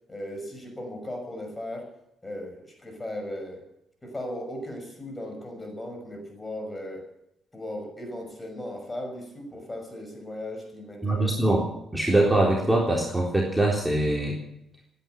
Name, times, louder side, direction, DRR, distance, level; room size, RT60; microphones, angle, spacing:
voice 1, 0.1-1.9 2.2-3.6 4.0-7.1 7.5-11.6, left 1 dB, 20° left, 4 dB, 6.1 m, -37 dB
voice 2, 11.0-11.6 11.9-14.4, right 1 dB, 5° right, -2 dB, 3.7 m, -23 dB
17.0 x 10.5 x 8.2 m, 0.81 s
cardioid pair, 90°, 0 cm